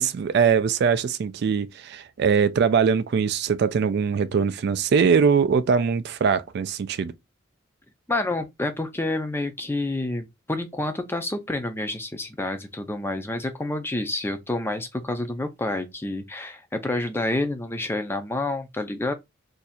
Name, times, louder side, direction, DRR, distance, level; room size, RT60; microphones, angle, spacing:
voice 1, 0.0-7.1, right 6 dB, 55° right, 0.3 m, -22 dB
voice 2, 8.1-19.1, left 2 dB, 10° left, 0.4 m, -28 dB
2.6 x 2.4 x 4.1 m
head